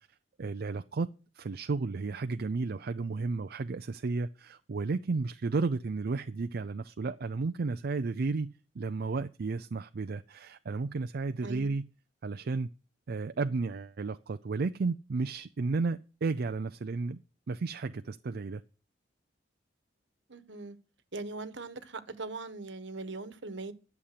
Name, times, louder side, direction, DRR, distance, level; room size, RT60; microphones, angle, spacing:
voice 1, 0.4-1.1 1.3-11.8 12.2-12.7 13.1-17.2 17.5-18.6, right 3 dB, 55° right, 0.5 m, -33 dB
voice 2, 11.4-11.7 20.3-20.8 21.1-23.7, right 3 dB, 70° right, 1.3 m, -40 dB
11.5 x 7.2 x 6.7 m
head